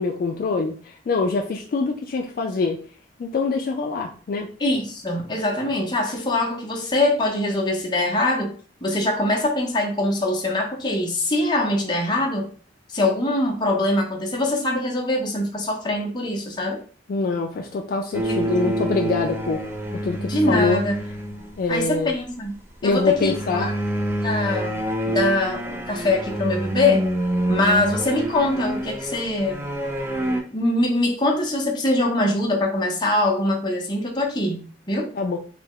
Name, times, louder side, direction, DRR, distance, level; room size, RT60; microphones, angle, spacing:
voice 1, 0.0-2.8 3.2-4.5 17.1-19.7 20.0-20.8 21.6-22.1 22.8-23.7 35.1-35.4, left 3 dB, 55° left, 2 dB, 0.3 m, -24 dB
voice 2, 4.6-8.5 8.8-12.5 12.9-16.8 18.3-18.8 20.3-20.9 21.7-22.5 22.8-23.7 24.2-27.1 27.5-29.7 30.5-35.1, left 2 dB, 25° left, 0 dB, 0.7 m, -23 dB
sound 1, 18.1-21.7 23.0-30.4, right 1 dB, 15° right, 0.4 m, -27 dB
3.3 x 2.0 x 3.5 m, 0.42 s
head